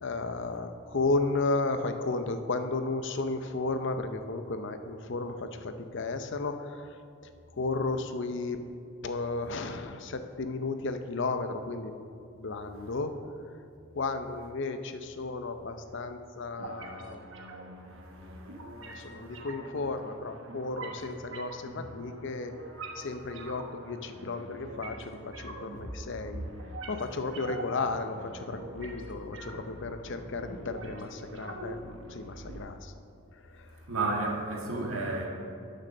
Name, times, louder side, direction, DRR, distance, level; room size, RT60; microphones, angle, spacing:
voice 1, 0.0-6.9 7.6-8.6 9.0-11.9 12.4-13.1 14.0-17.2 18.4-18.5 18.9-22.5 23.0-26.4 26.9-32.9, left 3 dB, 60° left, 0.7 m, -33 dB
sound 1, 16.6-32.6, right 1 dB, 65° right, 1.1 m, -44 dB
voice 2, 18.0-19.4 33.7-35.3, right 3 dB, 80° right, 1.7 m, -34 dB
9.7 x 6.7 x 6.4 m
head